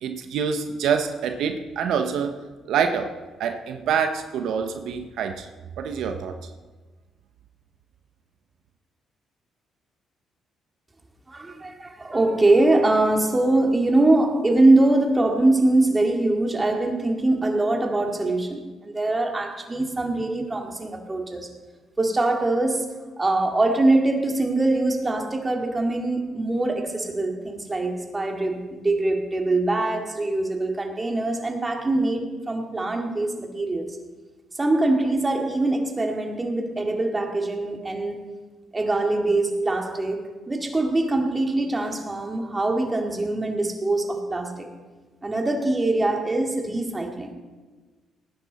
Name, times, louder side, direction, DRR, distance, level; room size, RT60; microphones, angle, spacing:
voice 1, 0.0-2.4 2.7-5.5 5.8-6.4, right 6 dB, 80° right, 6 dB, 0.9 m, -26 dB
voice 2, 11.3-21.5 22.0-34.0 34.6-38.2 38.7-44.7 45.2-47.3, right 2 dB, 20° right, 2 dB, 2.2 m, -23 dB
18.5 x 10.5 x 4.2 m, 1.3 s
cardioid pair, 90°, 0 cm